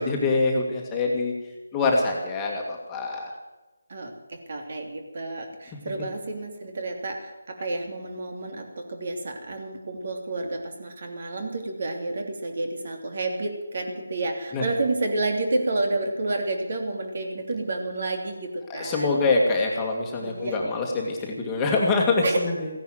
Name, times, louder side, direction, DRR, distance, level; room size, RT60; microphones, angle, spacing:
voice 1, 0.0-1.3 1.7-3.3 14.5-14.6 18.7-22.7, left 3 dB, 10° left, -1 dB, 1.9 m, -24 dB
voice 2, 3.9-19.2 20.2-20.6 22.2-22.4, right 2 dB, 50° right, 4 dB, 3.0 m, -30 dB
15.5 x 10.5 x 7.8 m, 1.1 s
figure-of-eight pair, 165°, 0 cm